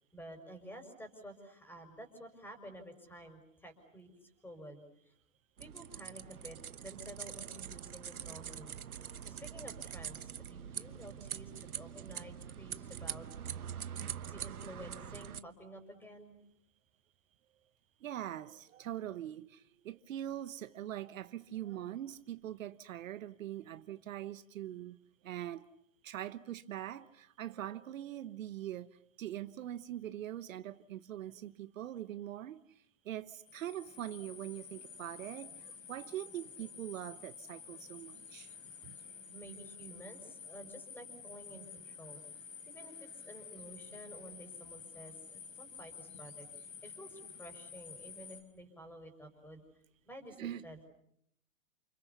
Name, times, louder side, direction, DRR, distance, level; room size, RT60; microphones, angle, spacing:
voice 1, 0.1-5.1 5.6-8.7 9.2-13.3 14.3-16.4 39.3-42.2 42.7-49.6 50.0-50.8, right 1 dB, 5° left, 5.8 m, -51 dB
sound 1, 5.6-15.4, right 8 dB, 90° right, 1.1 m, -44 dB
voice 2, 18.0-25.0 25.2-25.7 26.0-38.5 38.8-38.9 50.4-50.6, right 12 dB, 65° right, 1.2 m, -43 dB
sound 2, 33.5-48.4, left 6 dB, 75° left, 6.3 m, -51 dB
29.5 x 28.5 x 7.1 m
hypercardioid pair, 125°, 42 cm